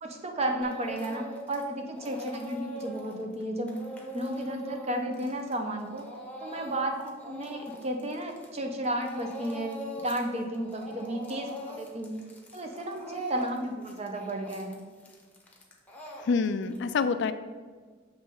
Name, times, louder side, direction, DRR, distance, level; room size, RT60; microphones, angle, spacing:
voice 1, 0.0-3.8 4.1-6.1 6.4-12.2 12.5-14.8, right 1 dB, 35° right, 3 dB, 0.7 m, -33 dB
Speech / Crying sobbing, 0.6-1.6 1.9-8.6 8.8-10.3 10.5-16.8, equal, 10° left, 1.0 m, -41 dB
voice 2, 16.2-17.3, left 5 dB, 60° left, 11 dB, 0.4 m, -26 dB
6.9 x 3.2 x 5.4 m, 1.5 s
head